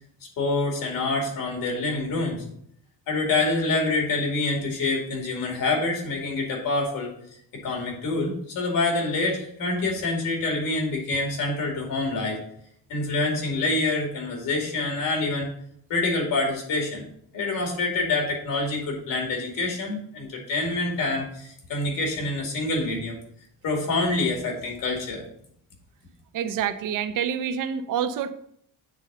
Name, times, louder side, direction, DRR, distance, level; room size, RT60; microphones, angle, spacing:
voice 1, 0.4-2.4 3.1-7.1 7.6-12.4 12.9-15.5 15.9-17.0 17.3-23.2 23.6-25.2, left 2 dB, 85° left, 1 dB, 2.5 m, -26 dB
voice 2, 26.3-28.3, right 8 dB, 75° right, 11 dB, 0.7 m, -27 dB
8.0 x 3.7 x 5.5 m, 0.67 s
cardioid pair, 155°, 33 cm